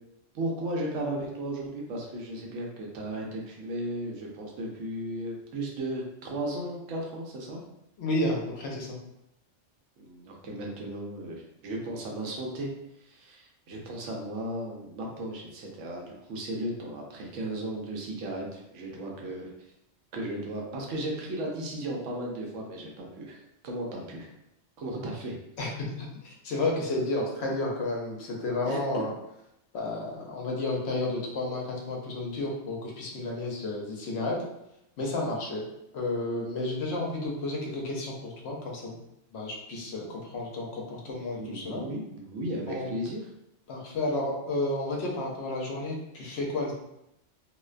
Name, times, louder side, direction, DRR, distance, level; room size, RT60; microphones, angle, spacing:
voice 1, 0.3-7.6 10.0-19.5 20.1-24.3 24.8-25.4 28.7-29.1 41.1-43.3, right 1 dB, 85° right, -1 dB, 1.0 m, -35 dB
voice 2, 8.0-9.0 25.6-29.1 29.7-34.4 35.0-35.6 35.9-39.0 39.3-41.8 42.7-42.9 43.7-46.7, left 2 dB, 65° left, -1 dB, 0.8 m, -31 dB
2.5 x 2.1 x 2.4 m, 0.83 s
omnidirectional pair, 1.2 m